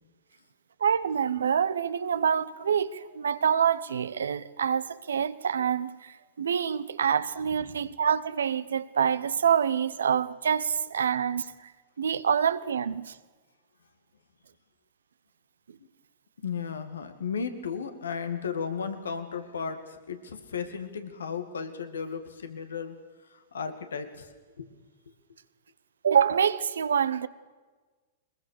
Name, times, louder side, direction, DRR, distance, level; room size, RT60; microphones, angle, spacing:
voice 1, 0.8-11.5 12.0-13.2 26.0-27.3, right 7 dB, 80° right, 0.9 m, -26 dB
voice 2, 16.4-22.9 23.3-24.3 24.6-24.7, left 6 dB, 85° left, 2.1 m, -34 dB
22.0 x 21.0 x 6.6 m
hypercardioid pair, 110°, 0 cm